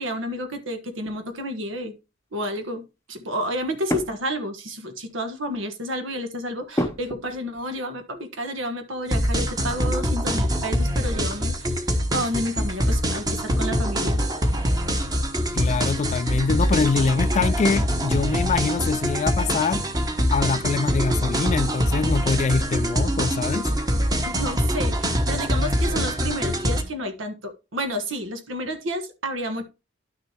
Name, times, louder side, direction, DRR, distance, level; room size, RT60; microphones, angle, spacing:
voice 1, 0.0-1.9 2.3-11.8 12.1-14.5 24.2-29.6, equal, 85° right, 1.4 m, -30 dB
sound 1, 0.9-1.3 3.9-4.6 5.1-5.4 6.7-7.7 8.1-8.2 10.5-10.9 11.1-11.8, equal, 15° left, 0.7 m, -31 dB
sound 2, 9.1-26.8, equal, 20° right, 1.1 m, -24 dB
voice 2, 15.5-19.9 20.3-23.7, left 4 dB, 35° left, 0.3 m, -24 dB
11.0 x 6.3 x 2.9 m
head